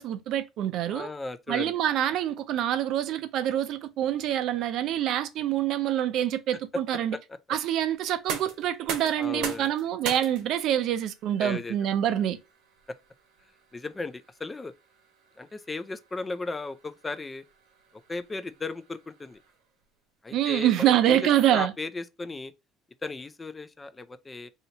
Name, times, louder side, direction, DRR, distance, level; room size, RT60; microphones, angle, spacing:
voice 1, 0.0-1.1 1.5-7.2 7.5-12.4 20.3-21.7, right 11 dB, 60° right, 0.4 m, -26 dB
voice 2, 0.9-1.7 7.1-7.4 9.2-9.7 11.4-11.7 13.7-14.7 15.4-17.4 18.1-19.4 20.2-22.5 23.0-24.5, left 3 dB, 15° left, 0.3 m, -36 dB
sound 1, 8.1-19.8, right 6 dB, 80° right, 0.9 m, -42 dB
2.8 x 2.7 x 4.2 m
cardioid pair, 140°, 0 cm